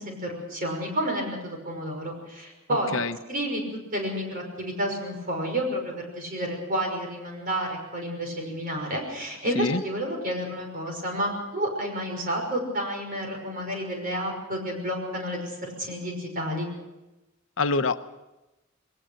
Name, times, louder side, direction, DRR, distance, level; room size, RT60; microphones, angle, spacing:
voice 1, 0.0-3.0 3.3-3.6 3.9-16.7, equal, 45° right, 2 dB, 5.9 m, -30 dB
voice 2, 17.6-18.0, left 3 dB, 65° left, 10 dB, 0.8 m, -25 dB
21.0 x 19.5 x 6.6 m, 1.0 s
head